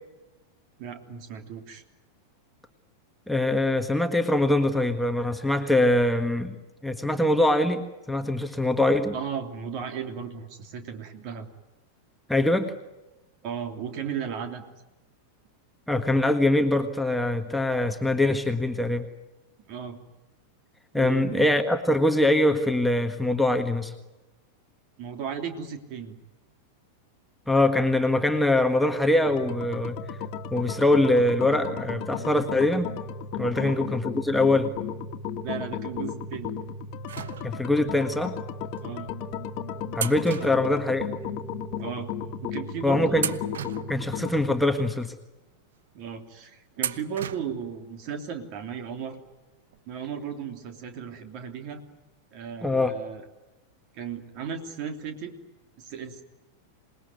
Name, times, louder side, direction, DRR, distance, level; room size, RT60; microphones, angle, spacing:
voice 1, 0.8-1.8 9.1-11.5 13.4-14.6 19.7-20.0 20.9-21.5 25.0-26.2 33.5-33.8 35.4-36.5 38.8-39.1 40.4-40.5 41.8-42.1 42.4-43.4 45.9-49.2 49.9-51.8 52.3-53.2 53.9-55.3 55.8-56.2, right 7 dB, 40° right, 6 dB, 3.2 m, -35 dB
voice 2, 3.3-6.5 6.8-9.1 12.3-12.7 15.9-19.1 20.9-23.9 27.5-30.0 30.5-32.9 33.4-34.7 37.4-38.4 39.9-41.1 42.8-43.3 43.9-45.1 52.6-52.9, left 1 dB, ahead, 5 dB, 1.6 m, -23 dB
sound 1, 29.2-44.6, left 6 dB, 40° left, 1.9 m, -35 dB
sound 2, 37.1-37.9 38.7-38.9 39.9-41.4 41.7-41.8 42.5-42.7 43.1-44.5 45.0-45.1 46.8-47.7 48.0-48.1 49.3-49.4 49.7-49.8, right 9 dB, 60° right, 0.9 m, -35 dB
27.0 x 20.5 x 9.5 m, 1.1 s
figure-of-eight pair, 90°, 0 cm